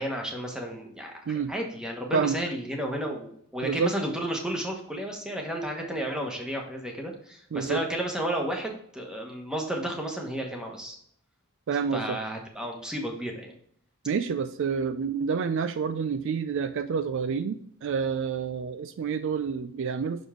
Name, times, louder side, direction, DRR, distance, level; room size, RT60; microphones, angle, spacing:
voice 1, 0.0-1.2 1.5-11.0 11.9-13.5, right 1 dB, 5° right, 1 dB, 1.1 m, -32 dB
voice 2, 7.5-7.8 11.7-12.2 14.1-20.3, right 6 dB, 60° right, 11 dB, 0.4 m, -28 dB
6.1 x 5.3 x 3.7 m, 0.65 s
head